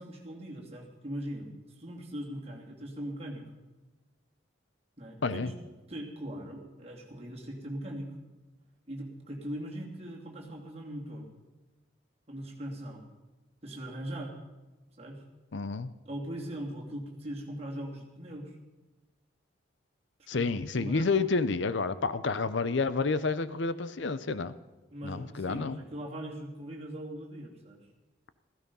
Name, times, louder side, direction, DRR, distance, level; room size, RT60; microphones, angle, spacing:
voice 1, 0.0-3.4 5.0-5.5 5.9-8.1 8.9-11.3 12.3-13.0 13.6-14.3 15.0-15.2 16.0-18.6 20.3-20.5 20.8-21.1 24.9-27.8, right 1 dB, 30° right, -2 dB, 2.9 m, -40 dB
voice 2, 15.5-15.9 20.3-24.5 25.0-25.8, left 4 dB, 65° left, 14 dB, 0.6 m, -29 dB
16.0 x 15.0 x 5.5 m, 1.2 s
head